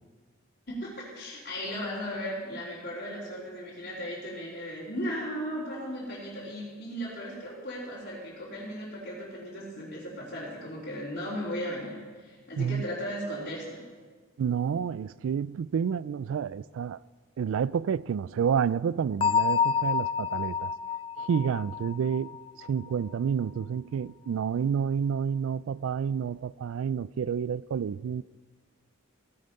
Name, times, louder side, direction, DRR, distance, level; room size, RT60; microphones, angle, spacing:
voice 1, 0.7-13.8, equal, 45° left, 3.4 m, -36 dB
voice 2, 14.4-17.0 17.4-20.7 21.2-28.2, right 7 dB, 70° right, 0.3 m, -29 dB
Bell, 19.2-22.9, left 6 dB, 25° left, 0.3 m, -28 dB
16.0 x 9.7 x 5.3 m
head